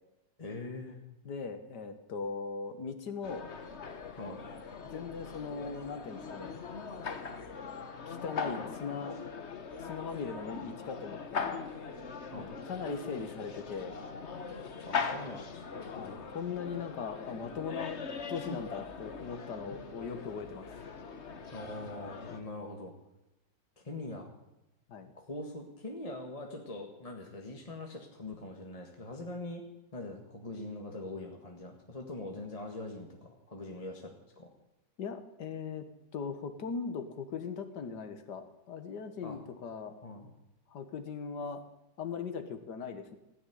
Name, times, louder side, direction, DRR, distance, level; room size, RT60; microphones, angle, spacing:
voice 1, 0.4-1.0 4.2-4.4 12.3-12.5 14.9-15.9 18.5-18.6 21.5-22.9 23.8-24.3 25.1-29.6 29.9-34.5 39.2-39.4 40.0-40.3, left 2 dB, 20° left, 1 dB, 1.6 m, -42 dB
voice 2, 1.3-3.5 4.8-6.6 8.1-9.2 9.8-11.7 12.3-14.0 15.9-20.7 24.9-25.1 35.0-35.9 36.1-39.9 40.7-41.6 42.0-43.2, left 5 dB, 65° left, 9 dB, 1.9 m, -39 dB
sound 1, 3.2-22.4, left 5 dB, 40° left, 1.3 m, -41 dB
15.0 x 10.0 x 9.3 m, 0.94 s
omnidirectional pair, 1.9 m